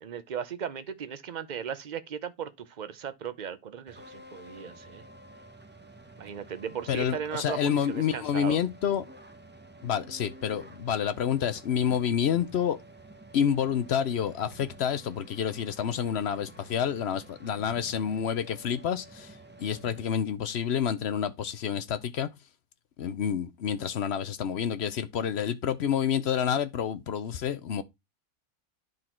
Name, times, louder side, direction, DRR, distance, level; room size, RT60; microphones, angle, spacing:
voice 1, 0.0-5.0 6.2-8.6, right 8 dB, 50° right, 0.5 m, -37 dB
sound 1, 3.9-20.0, right 1 dB, 10° right, 0.6 m, -50 dB
voice 2, 6.9-9.1 9.8-12.8 13.3-22.3 23.0-27.8, left 8 dB, 60° left, 0.7 m, -28 dB
10.5 x 4.1 x 4.4 m
omnidirectional pair, 1.6 m